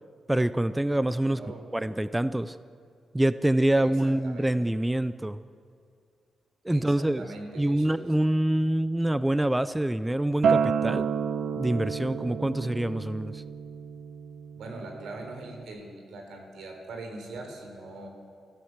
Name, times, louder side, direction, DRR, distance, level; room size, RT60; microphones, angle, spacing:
voice 1, 0.3-1.4 1.7-2.6 3.1-5.4 6.6-7.3 7.6-11.1 11.6-13.4, right 1 dB, 5° right, 14 dB, 0.4 m, -26 dB
voice 2, 1.3-1.6 3.7-4.5 6.7-8.0 14.6-18.1, right 2 dB, 90° right, 3 dB, 4.1 m, -41 dB
Acoustic guitar, 10.4-15.6, right 6 dB, 70° right, 0.8 m, -30 dB
25.5 x 15.0 x 7.3 m, 2.3 s
wide cardioid pair, 165°, 0 cm